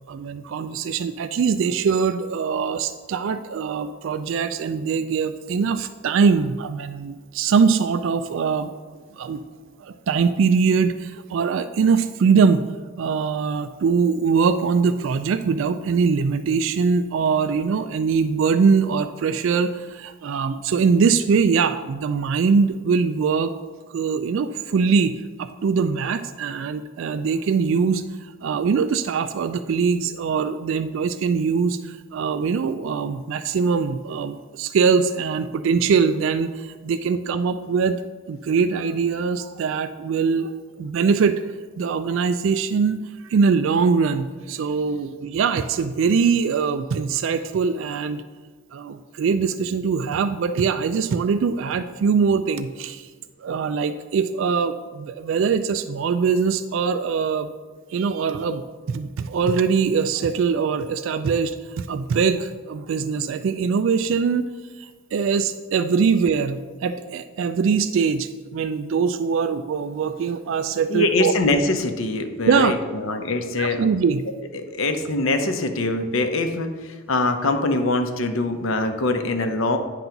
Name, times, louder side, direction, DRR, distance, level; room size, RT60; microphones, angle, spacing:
voice 1, 0.1-8.8 9.1-9.4 9.8-12.6 13.0-23.5 23.9-38.0 38.3-40.5 40.8-41.4 41.8-48.2 48.7-53.1 53.4-57.5 57.9-64.5 64.8-71.3 72.5-72.7 73.6-74.2, right 5 dB, 65° right, 10 dB, 0.3 m, -22 dB
voice 2, 70.9-73.9 74.5-79.8, left 2 dB, 75° left, 7 dB, 0.8 m, -23 dB
9.1 x 3.9 x 5.8 m, 1.4 s
head